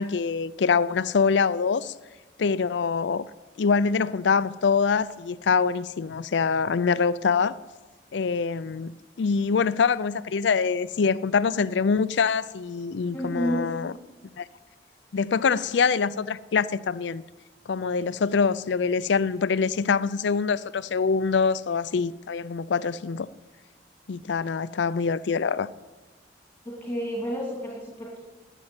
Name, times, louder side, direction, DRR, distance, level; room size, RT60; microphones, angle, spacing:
voice 1, 0.0-1.9 2.4-3.2 3.6-7.6 8.1-13.9 14.4-14.5 15.1-17.2 17.7-23.3 24.1-25.7, left 5 dB, 80° left, 0.5 m, -24 dB
voice 2, 13.1-13.6 26.6-28.2, equal, 10° left, 2.4 m, -30 dB
11.5 x 9.1 x 9.3 m
head